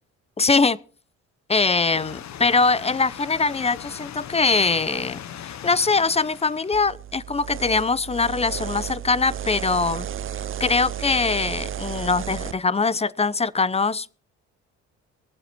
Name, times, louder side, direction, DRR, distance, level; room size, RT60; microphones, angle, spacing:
voice 1, 0.4-0.8 1.5-10.1 10.6-14.1, left 4 dB, 20° left, 0.7 m, -22 dB
sound 1, 1.9-6.8, left 10 dB, 65° left, 1.1 m, -39 dB
sound 2, 6.7-12.5, right 10 dB, 45° right, 0.6 m, -33 dB
23.0 x 7.9 x 4.5 m
cardioid pair, 90°, 30 cm